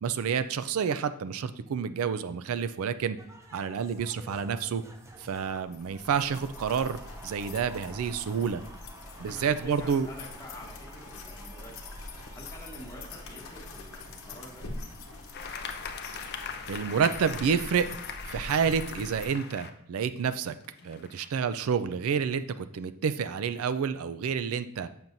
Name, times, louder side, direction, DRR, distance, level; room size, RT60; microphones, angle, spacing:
voice 1, 0.0-3.2 3.5-4.8 5.2-8.6 9.2-10.1 16.7-17.9 18.3-20.6 20.8-24.9, right 6 dB, 70° right, 12 dB, 0.4 m, -29 dB
sound 1, 3.2-17.6, right 1 dB, 15° right, 0.5 m, -52 dB
sound 2, 5.6-19.3, left 2 dB, 65° left, 0.9 m, -44 dB
voice 2, 9.2-12.0 12.3-14.7, left 1 dB, 15° left, -3 dB, 1.2 m, -47 dB
sound 3, 15.3-19.7 20.4-21.3, left 6 dB, 45° left, 0.5 m, -40 dB
7.1 x 6.0 x 2.6 m, 0.73 s
head